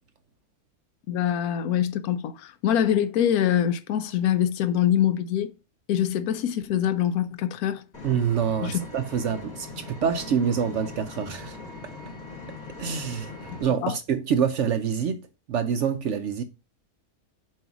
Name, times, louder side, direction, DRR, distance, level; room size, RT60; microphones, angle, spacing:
voice 1, 1.1-5.5 5.9-7.8 8.6-8.8 13.8-13.9, left 10 dB, 75° left, 1.1 m, -24 dB
Vehicle, 7.9-13.6, left 3 dB, 45° left, 2.9 m, -40 dB
voice 2, 8.0-11.6 12.8-16.4, right 7 dB, 65° right, 0.8 m, -26 dB
7.4 x 2.7 x 5.8 m
omnidirectional pair, 1.6 m